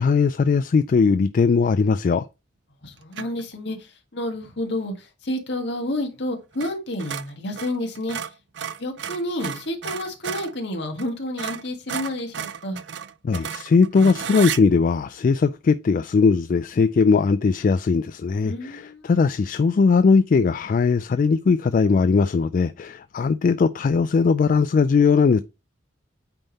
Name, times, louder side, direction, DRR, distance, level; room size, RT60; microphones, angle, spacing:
voice 1, 0.0-2.2 13.2-25.4, left 5 dB, 45° left, 0.3 m, -19 dB
voice 2, 2.8-3.8 4.1-4.9 5.2-8.2 8.8-12.8 18.4-19.1, left 1 dB, 65° left, 1.7 m, -29 dB
sound 1, 3.1-3.4 6.5-6.7 7.0-10.5 11.0-11.1 11.4-14.6, right 8 dB, 65° right, 0.5 m, -33 dB
8.9 x 3.6 x 4.1 m
head